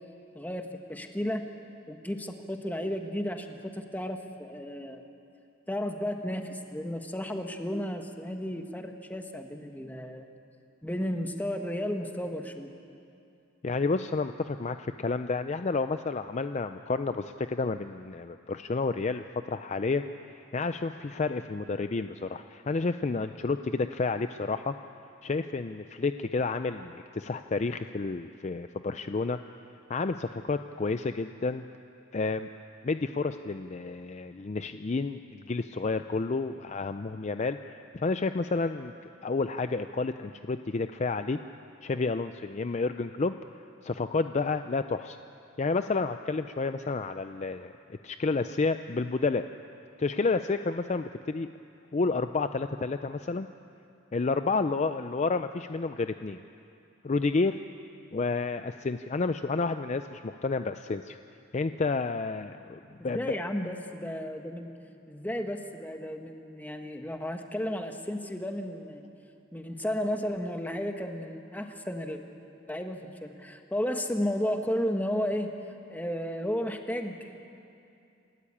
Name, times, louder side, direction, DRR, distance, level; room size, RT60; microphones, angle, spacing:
voice 1, 0.3-1.4 1.9-5.0 5.7-10.3 10.8-12.7 63.0-64.7 65.1-69.0 69.5-72.2 72.7-75.5 75.9-77.4, equal, 10° left, 5 dB, 1.3 m, -33 dB
voice 2, 13.6-20.0 20.5-24.7 25.2-29.4 29.9-31.6 32.1-32.5 32.8-38.9 39.2-41.4 41.8-43.3 43.8-45.2 45.6-49.5 50.0-51.5 51.9-53.5 54.1-56.4 57.0-57.6 58.1-61.2 61.5-63.4, left 3 dB, 35° left, 9 dB, 0.4 m, -30 dB
28.5 x 13.5 x 8.7 m, 2.6 s
head